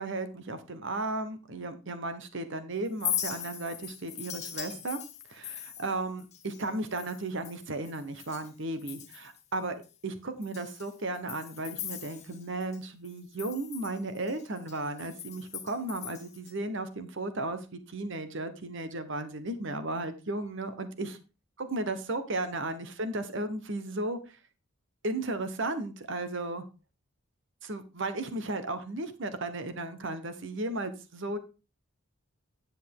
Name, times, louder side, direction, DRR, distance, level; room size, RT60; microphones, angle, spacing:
voice 1, 0.0-5.0 5.3-9.8 10.0-21.2 21.6-24.4 25.0-26.6 27.6-31.4, right 2 dB, 55° right, 11 dB, 1.0 m, -35 dB
Chink clink, 2.9-8.5 8.8-9.4 9.8-9.9 10.4-12.8 13.0-16.5, left 10 dB, 30° left, 1.7 m, -40 dB
9.9 x 8.3 x 3.6 m, 0.31 s
head